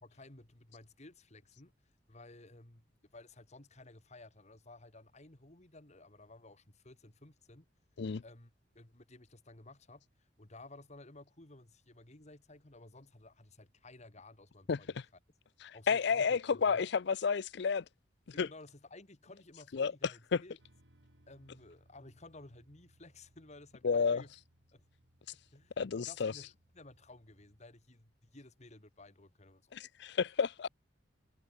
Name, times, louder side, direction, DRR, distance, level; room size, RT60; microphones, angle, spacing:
voice 1, 0.0-1.7 2.1-2.9 3.1-7.7 8.2-10.0 10.4-14.9 15.7-16.9 18.3-20.6 21.3-24.3 24.7-24.8 25.5-29.7, left 2 dB, 40° left, 2.4 m, -55 dB
voice 2, 14.7-15.0 15.6-17.8 18.4-18.5 19.7-20.4 23.8-24.2 25.8-26.3 29.7-30.7, left 5 dB, 65° left, 0.5 m, -31 dB
sound 1, 20.6-27.6, right 1 dB, 80° right, 3.3 m, -68 dB
head